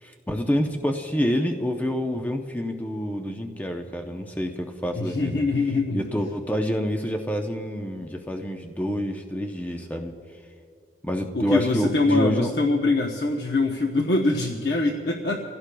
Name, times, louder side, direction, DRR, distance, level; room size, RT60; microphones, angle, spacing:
voice 1, 0.0-5.4 5.9-10.1 11.0-12.5, equal, 10° left, 3 dB, 0.6 m, -27 dB
voice 2, 4.9-6.0 11.3-15.4, left 3 dB, 65° left, 1 dB, 0.9 m, -23 dB
29.5 x 16.5 x 2.3 m, 2.3 s
head